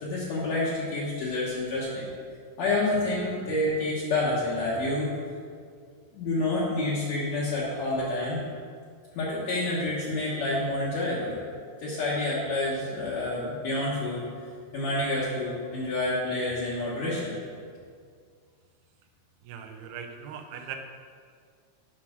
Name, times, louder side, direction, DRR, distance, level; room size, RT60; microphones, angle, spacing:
voice 1, 0.0-2.1 2.6-5.1 6.1-8.4 9.1-11.4 11.8-14.3 14.7-17.4, left 2 dB, 60° left, -7 dB, 2.2 m, -28 dB
voice 2, 19.4-20.8, right 8 dB, 75° right, 5 dB, 2.1 m, -40 dB
7.7 x 5.6 x 6.0 m, 2.1 s
omnidirectional pair, 3.9 m